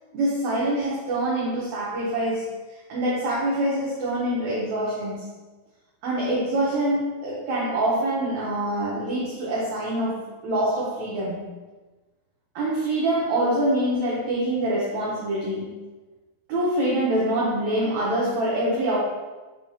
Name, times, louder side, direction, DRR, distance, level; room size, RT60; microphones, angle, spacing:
voice 1, 0.1-2.5 2.9-5.3 6.0-11.5 12.5-15.8 16.5-19.0, right 1 dB, 80° right, -6 dB, 1.6 m, -25 dB
5.5 x 3.4 x 2.7 m, 1.2 s
omnidirectional pair, 4.2 m